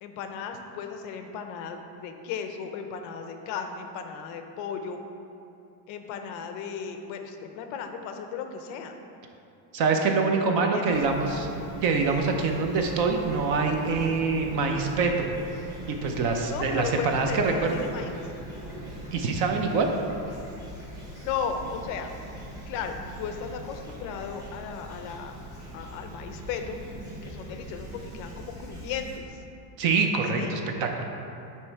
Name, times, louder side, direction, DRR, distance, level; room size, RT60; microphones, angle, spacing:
voice 1, 0.0-5.0 5.9-8.9 10.2-11.0 11.3-11.4 16.2-18.3 19.8-20.0 21.2-22.1 22.7-25.4 25.7-26.8 27.2-29.4 30.3-30.5, left 6 dB, 40° left, 5 dB, 0.5 m, -36 dB
voice 2, 9.7-11.5 11.8-15.3 15.9-17.9 19.1-19.9 29.8-31.0, right 4 dB, 50° right, 3 dB, 0.7 m, -25 dB
Fowl / Chirp tweet, 10.9-29.2, right 1 dB, 10° right, 1.0 m, -41 dB
8.6 x 3.1 x 4.6 m, 2.7 s
cardioid pair, 165°, 47 cm